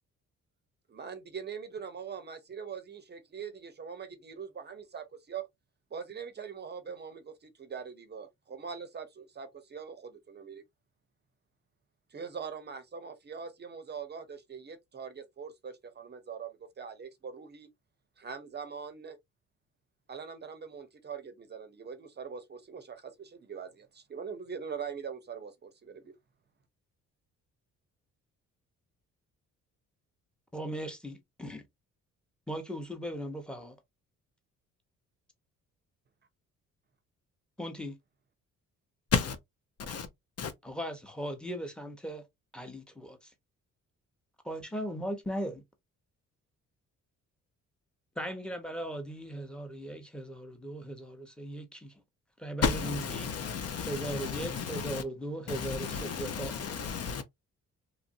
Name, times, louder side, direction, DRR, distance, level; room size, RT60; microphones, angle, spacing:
voice 1, 0.9-5.5 5.9-10.6 12.1-17.7 18.2-19.2 20.1-26.1, right 6 dB, 35° right, 0.6 m, -42 dB
voice 2, 30.5-31.6 32.5-33.8 37.6-38.0 40.6-42.2 42.5-43.3 44.4-45.6 48.2-51.9 52.4-53.3 53.9-56.5, right 1 dB, 5° left, 0.9 m, -38 dB
voice 3, 52.6-55.0 55.5-57.2, left 6 dB, 55° left, 0.7 m, -32 dB
3.0 x 2.5 x 2.5 m
cardioid pair, 90°, 30 cm